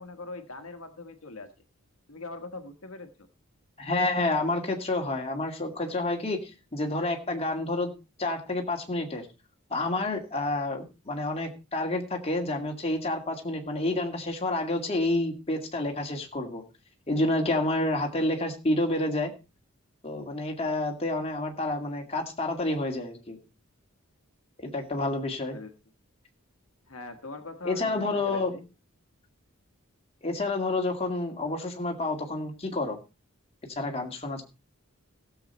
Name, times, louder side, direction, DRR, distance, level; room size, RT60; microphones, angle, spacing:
voice 1, 0.0-1.5 2.1-3.1 25.4-25.7 26.9-28.7, left 3 dB, 75° left, 6 dB, 1.5 m, -41 dB
voice 2, 3.8-7.9 8.2-9.3 9.7-16.6 17.1-19.3 20.0-23.4 24.6-25.6 27.7-28.5 30.2-33.0 33.8-34.4, left 2 dB, 30° left, 2 dB, 2.2 m, -29 dB
16.5 x 7.5 x 4.2 m, 0.30 s
head